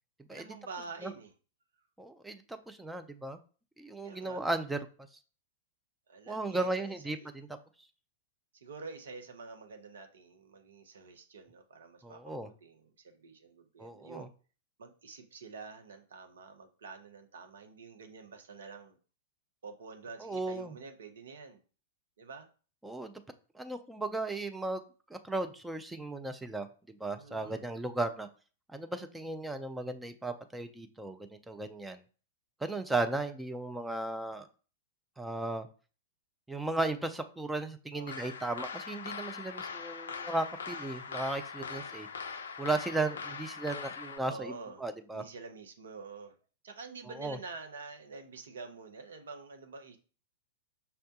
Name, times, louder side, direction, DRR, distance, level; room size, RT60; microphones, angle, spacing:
voice 1, 0.3-1.3 4.0-4.4 6.1-7.3 8.5-14.3 14.8-19.0 19.6-21.6 22.2-22.5 27.2-27.7 37.9-38.3 44.2-44.8 45.1-46.3 46.6-50.0, right 4 dB, 65° right, 6 dB, 0.6 m, -47 dB
voice 2, 2.0-3.4 3.8-4.9 6.3-7.5 12.0-12.5 13.8-14.3 20.2-20.7 22.8-23.1 23.5-24.8 25.1-28.3 28.7-31.2 31.5-32.0 32.6-34.5 35.2-35.7 36.5-42.1 42.6-44.5 44.8-45.2 47.2-47.4, right 2 dB, 5° right, 7 dB, 0.4 m, -35 dB
sound 1, 38.1-44.2, left 5 dB, 70° left, 0.4 m, -41 dB
5.5 x 2.2 x 2.7 m, 0.37 s
figure-of-eight pair, 100°, 0 cm